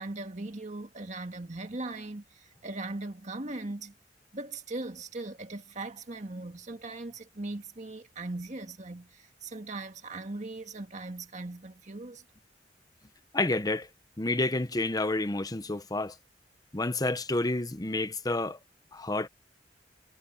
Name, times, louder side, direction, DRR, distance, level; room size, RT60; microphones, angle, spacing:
voice 1, 0.0-3.9 4.3-12.2, right 2 dB, 40° right, 1.8 m, -39 dB
voice 2, 13.3-13.9 14.2-16.1 16.7-18.6 18.9-19.3, left 2 dB, 20° left, 0.8 m, -29 dB
head